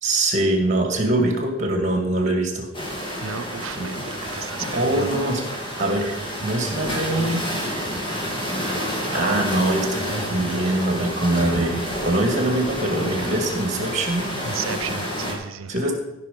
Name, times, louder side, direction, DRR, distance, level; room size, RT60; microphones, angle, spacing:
voice 1, 0.0-2.7 3.8-3.9 4.7-5.4 5.8-7.5 9.1-14.3 15.7-15.9, right 1 dB, 35° right, 2.0 m, -23 dB
sound 1, 2.7-15.3, equal, 25° left, 2.2 m, -29 dB
voice 2, 3.2-5.1 14.4-15.7, right 6 dB, 80° right, 0.7 m, -33 dB
15.0 x 5.7 x 5.4 m
head